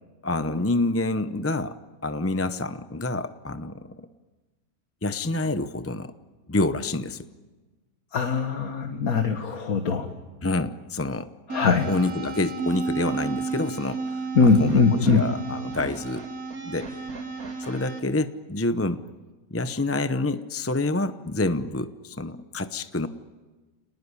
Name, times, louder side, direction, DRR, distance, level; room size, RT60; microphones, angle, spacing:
voice 1, 0.2-1.8 2.0-4.1 5.0-6.1 6.5-7.2 10.4-11.3 11.9-16.3 16.6-16.9 17.6-19.0 19.5-23.1, left 2 dB, 15° left, 10 dB, 0.5 m, -27 dB
voice 2, 8.1-10.1 11.5-11.9 14.4-15.3, left 4 dB, 70° left, 5 dB, 2.0 m, -21 dB
sound 1, 11.5-18.0, right 4 dB, 70° right, 3.2 m, -32 dB
29.5 x 20.0 x 9.9 m, 1.3 s
omnidirectional pair, 1.6 m